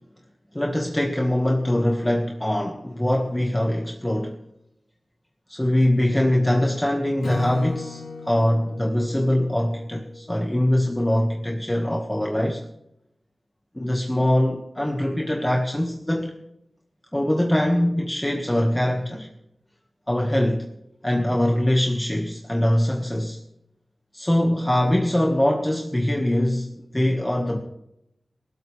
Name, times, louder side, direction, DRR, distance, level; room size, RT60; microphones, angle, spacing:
voice 1, 0.5-4.4 5.5-12.6 13.7-16.3 17.1-19.3 20.1-20.7 21.0-23.4 24.1-27.6, left 1 dB, 10° left, 2 dB, 1.6 m, -22 dB
Acoustic guitar / Strum, 7.2-10.5, left 4 dB, 70° left, 3.2 m, -37 dB
20.0 x 17.0 x 3.3 m, 0.82 s
wide cardioid pair, 80°, 0 cm